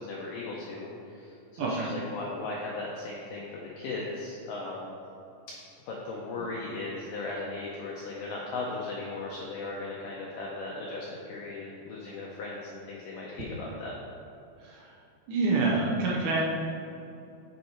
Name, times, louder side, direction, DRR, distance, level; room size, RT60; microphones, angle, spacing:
voice 1, 0.0-5.0 5.9-13.9, left 3 dB, 80° left, -3 dB, 2.0 m, -37 dB
voice 2, 15.3-16.4, right 3 dB, 75° right, -3 dB, 1.8 m, -26 dB
9.6 x 4.5 x 4.4 m, 2.7 s
omnidirectional pair, 4.6 m